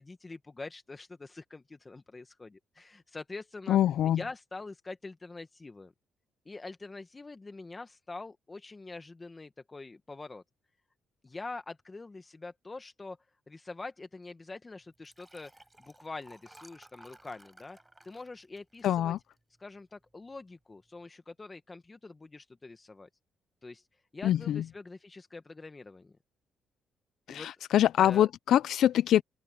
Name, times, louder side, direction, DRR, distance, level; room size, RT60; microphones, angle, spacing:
voice 1, 0.0-3.8 4.1-5.9 6.4-10.4 11.2-13.2 13.5-17.8 18.0-19.1 19.6-23.1 23.6-23.9 24.1-26.1 27.3-27.5 28.0-28.3, left 3 dB, 25° left, 1.2 m, -45 dB
voice 2, 3.7-4.2 18.8-19.2 24.2-24.6 27.3-29.2, left 11 dB, 75° left, 0.4 m, -24 dB
Liquid, 14.9-19.6 20.1-20.3 20.6-20.7, right 1 dB, 10° right, 5.5 m, -57 dB
open air
cardioid pair, 90°, 0 cm